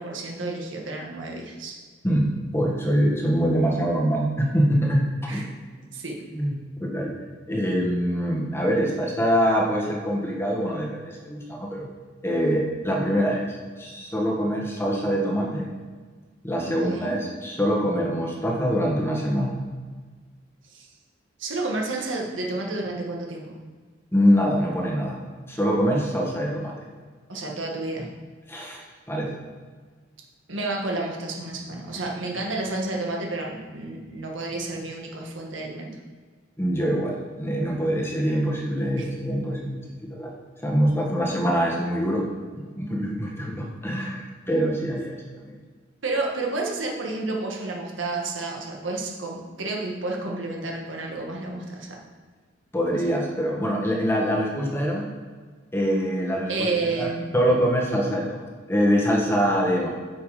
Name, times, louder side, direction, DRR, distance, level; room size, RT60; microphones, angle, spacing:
voice 1, 0.0-1.7 5.3-5.5 5.9-6.2 16.7-17.1 20.7-20.9 21.4-23.6 27.3-28.1 30.5-35.9 39.0-39.1 46.0-52.0 52.9-53.1 56.5-57.3, right 2 dB, 75° right, 0 dB, 1.8 m, -30 dB
voice 2, 2.0-5.5 6.3-6.5 6.8-7.1 7.5-11.9 12.2-13.5 13.8-15.7 16.4-19.5 24.1-25.2 25.5-26.7 28.5-29.3 36.6-39.8 40.1-40.3 40.6-42.2 42.8-45.2 45.4-45.5 52.7-55.1 55.7-57.1 57.3-58.4 58.7-59.9, equal, 15° left, -2 dB, 1.7 m, -24 dB
8.9 x 6.0 x 5.0 m, 1.5 s
head